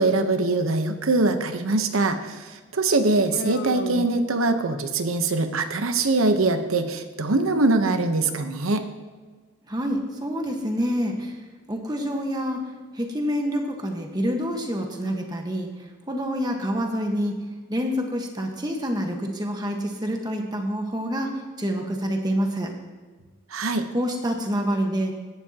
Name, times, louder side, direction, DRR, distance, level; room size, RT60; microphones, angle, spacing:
voice 1, 0.0-8.9 23.5-23.9, right 2 dB, 90° right, 8 dB, 1.0 m, -23 dB
Human voice, 3.3-5.0, left 2 dB, 55° left, 0.8 m, -35 dB
voice 2, 9.7-11.4 11.7-15.7 16.1-17.4 17.7-22.7 23.9-25.1, equal, 20° right, 2 dB, 1.4 m, -27 dB
16.5 x 11.5 x 2.9 m, 1.4 s
head